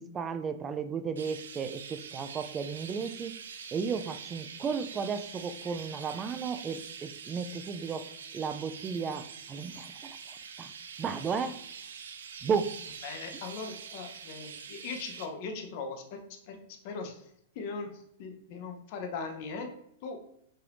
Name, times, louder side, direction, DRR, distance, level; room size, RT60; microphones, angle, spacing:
voice 1, 0.0-3.4 3.7-8.1 8.3-10.2 10.6-10.7 11.0-11.6 12.4-12.7, right 6 dB, 20° right, 10 dB, 0.3 m, -34 dB
Chirp tweet, 1.2-15.3, right 6 dB, 90° right, 0.5 m, -45 dB
voice 2, 13.0-16.2 16.5-16.6 16.8-17.1 17.6-17.9 18.2-19.7 20.0-20.2, left 4 dB, 50° left, 4 dB, 0.8 m, -39 dB
5.6 x 3.4 x 2.5 m, 0.72 s
hypercardioid pair, 135°, 0 cm